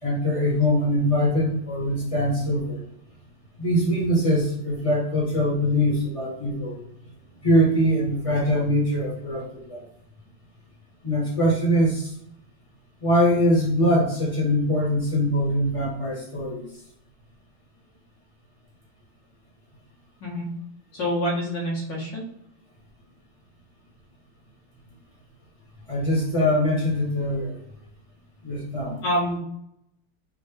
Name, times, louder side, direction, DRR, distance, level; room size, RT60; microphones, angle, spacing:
voice 1, 0.0-2.8 3.6-6.8 7.4-9.9 11.0-12.1 13.0-16.7 25.9-27.6 28.4-29.0, equal, 25° left, -4 dB, 0.9 m, -22 dB
voice 2, 20.9-22.2 29.0-29.4, equal, 80° left, -5 dB, 2.0 m, -26 dB
4.1 x 2.7 x 3.3 m, 0.74 s
omnidirectional pair, 2.0 m